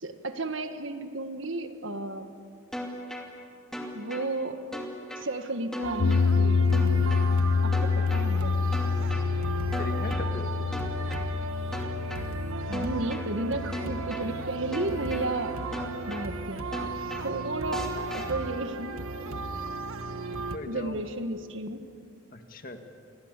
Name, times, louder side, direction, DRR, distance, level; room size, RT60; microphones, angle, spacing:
voice 1, 0.0-2.3 3.9-4.6 5.2-8.7 12.7-15.6 16.1-16.6 17.2-17.9 18.1-19.0 20.6-21.8, right 2 dB, 65° right, 8 dB, 1.6 m, -33 dB
sound 1, 2.7-3.3 3.7-4.3 4.7-5.3 5.7-6.3 6.7-7.3 7.7-8.3 8.7-9.3 9.7-10.3 10.7-11.3 11.7-12.3 12.7-13.3 13.7-14.3 14.7-15.3 15.7-16.3 16.7-17.3 17.7-18.3, equal, ahead, 2.6 m, -36 dB
sound 2, 5.8-20.6, right 3 dB, 85° right, 1.5 m, -36 dB
sound 3, 6.0-16.2, left 5 dB, 85° left, 0.8 m, -28 dB
voice 2, 9.8-10.5 20.3-21.0 22.3-22.8, left 1 dB, 40° left, 6 dB, 1.9 m, -39 dB
28.0 x 22.0 x 8.3 m, 2.6 s
head